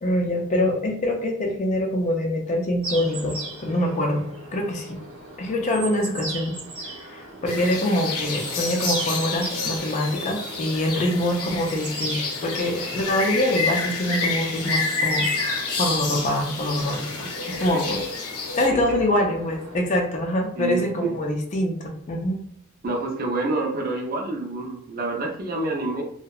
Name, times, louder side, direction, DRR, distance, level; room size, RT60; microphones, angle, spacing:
voice 1, 0.0-4.3 4.5-5.0 5.4-18.0 18.6-22.4, left 1 dB, 35° left, 2 dB, 0.3 m, -25 dB
sound 1, 2.8-19.8, right 2 dB, 65° right, 0.8 m, -38 dB
sound 2, 7.5-18.7, left 4 dB, 90° left, 0.6 m, -29 dB
voice 2, 20.6-21.1 22.8-26.0, right 2 dB, 40° right, 2 dB, 0.4 m, -28 dB
2.7 x 2.1 x 2.3 m, 0.64 s
head